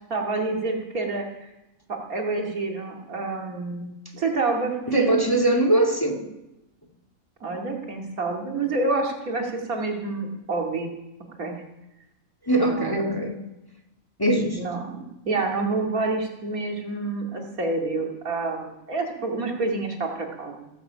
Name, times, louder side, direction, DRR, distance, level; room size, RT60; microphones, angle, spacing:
voice 1, 0.1-1.5 1.9-5.2 7.4-10.9 11.4-11.5 12.6-13.1 14.5-20.8, right 3 dB, 80° right, 1 dB, 2.8 m, -28 dB
voice 2, 4.9-6.2 12.5-13.3 14.2-14.6, right 1 dB, 15° left, 4 dB, 2.3 m, -21 dB
16.0 x 15.0 x 5.7 m, 0.94 s
omnidirectional pair, 1.5 m